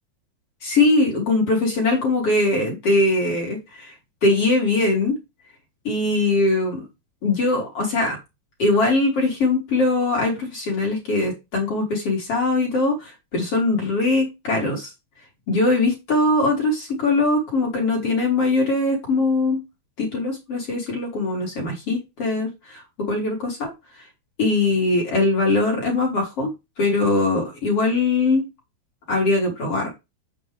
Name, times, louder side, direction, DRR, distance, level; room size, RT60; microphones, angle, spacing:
voice 1, 0.6-3.9 4.2-5.2 5.8-6.9 7.2-8.2 8.6-14.9 15.5-19.6 20.0-23.7 24.4-26.5 26.8-28.4 29.1-29.9, left 2 dB, 40° left, 0 dB, 3.3 m, -21 dB
8.4 x 7.5 x 3.4 m, 0.23 s
omnidirectional pair, 5.0 m